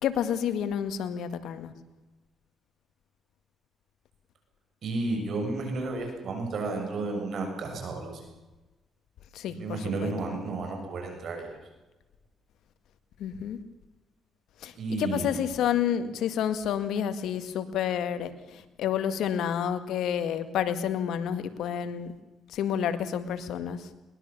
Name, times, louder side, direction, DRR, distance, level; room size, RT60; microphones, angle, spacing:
voice 1, 0.0-1.7 9.3-10.1 13.2-13.6 14.6-14.7 15.0-22.1 22.5-23.8, left 9 dB, 80° left, 10 dB, 1.9 m, -29 dB
voice 2, 4.8-8.2 9.5-11.5 14.8-15.3, right 3 dB, 60° right, 3 dB, 6.9 m, -32 dB
22.0 x 20.5 x 7.1 m, 1.1 s
cardioid pair, 90°, 0 cm